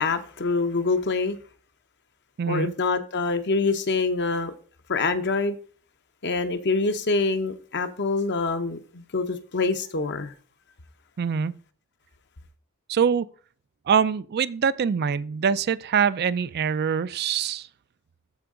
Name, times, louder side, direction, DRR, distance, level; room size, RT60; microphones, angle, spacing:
voice 1, 0.0-1.4 2.5-4.5 4.9-5.6 6.2-10.3, left 3 dB, 50° left, 0.9 m, -25 dB
voice 2, 2.4-2.7 11.2-11.6 12.9-13.3 13.9-17.7, right 7 dB, 45° right, 0.4 m, -24 dB
13.5 x 4.6 x 3.8 m
head